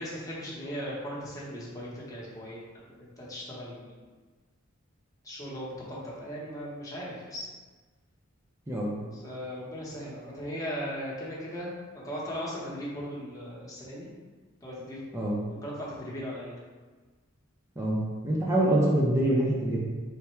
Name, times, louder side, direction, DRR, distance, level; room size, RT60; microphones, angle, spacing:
voice 1, 0.0-4.0 5.2-7.5 9.1-14.1 14.6-15.0 15.6-16.5, equal, 15° left, -7 dB, 0.8 m, -38 dB
voice 2, 17.8-19.8, right 1 dB, 15° right, -5 dB, 0.5 m, -25 dB
3.4 x 2.1 x 4.3 m, 1.4 s
head